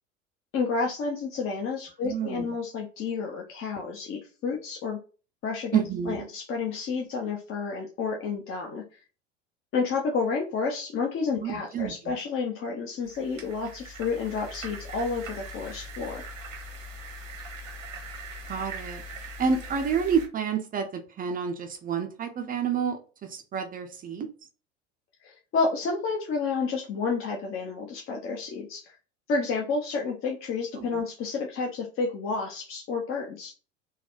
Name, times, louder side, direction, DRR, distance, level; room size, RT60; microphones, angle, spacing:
voice 1, 0.5-5.0 5.4-8.8 9.7-16.2 25.2-28.9 29.3-33.5, left 4 dB, 35° left, 0 dB, 0.7 m, -30 dB
voice 2, 2.0-2.5 5.7-6.3 11.4-12.1 18.5-19.0 19.4-24.3 30.7-31.0, right 6 dB, 25° right, 5 dB, 0.5 m, -29 dB
sound 1, 13.0-20.3, right 1 dB, 80° right, 1.0 m, -41 dB
4.0 x 2.1 x 2.5 m, 0.35 s
figure-of-eight pair, 75°, 37 cm